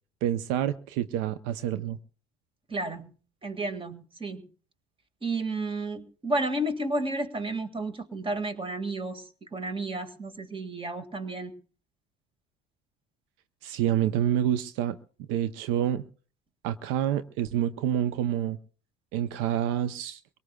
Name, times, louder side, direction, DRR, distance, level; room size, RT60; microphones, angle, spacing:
voice 1, 0.2-2.0 13.6-16.0 16.6-18.6 19.1-20.2, right 10 dB, 75° right, 0.7 m, -28 dB
voice 2, 2.7-3.1 3.4-4.5 5.2-11.5, right 2 dB, 25° right, 1.9 m, -32 dB
23.5 x 18.5 x 2.3 m
supercardioid pair, 80°, 20 cm